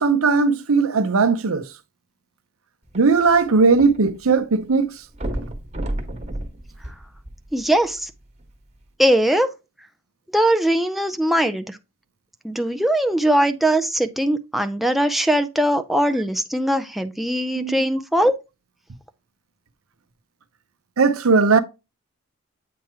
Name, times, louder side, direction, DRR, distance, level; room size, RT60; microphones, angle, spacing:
voice 1, 0.0-1.7 2.9-4.9 17.5-17.7 21.0-21.6, right 4 dB, 80° right, 0.7 m, -18 dB
sound 1, 2.9-4.4 4.6-4.7 5.1-7.7 8.4-8.5, right 1 dB, 30° right, 1.3 m, -31 dB
voice 2, 7.5-8.1 9.0-9.5 10.3-11.8 12.4-18.4, right 1 dB, ahead, 0.4 m, -20 dB
8.5 x 3.0 x 4.7 m
head